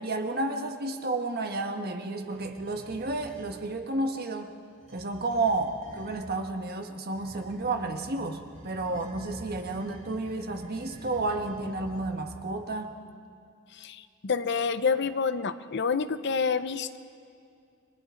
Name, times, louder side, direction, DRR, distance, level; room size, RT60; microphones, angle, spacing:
voice 1, 0.0-4.5 4.9-12.9, right 2 dB, 50° right, 5 dB, 1.4 m, -31 dB
sound 1, 2.2-3.5 4.7-6.3 7.1-12.6, equal, 35° right, 6.7 m, -48 dB
voice 2, 13.7-17.0, left 5 dB, 55° left, 12 dB, 0.7 m, -28 dB
30.0 x 22.5 x 3.9 m, 2.4 s
head